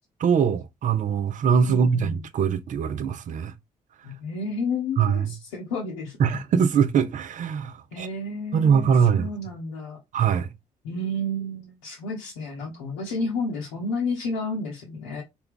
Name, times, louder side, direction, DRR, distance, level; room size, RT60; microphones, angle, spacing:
voice 1, 0.2-3.5 5.0-5.3 6.2-8.1 8.5-9.3 10.1-10.5, right 7 dB, 40° right, 0.4 m, -22 dB
voice 2, 1.6-2.3 4.0-6.4 7.9-10.0 10.8-15.2, left 2 dB, 70° left, 0.8 m, -31 dB
3.3 x 2.2 x 3.6 m
figure-of-eight pair, 40°, 21 cm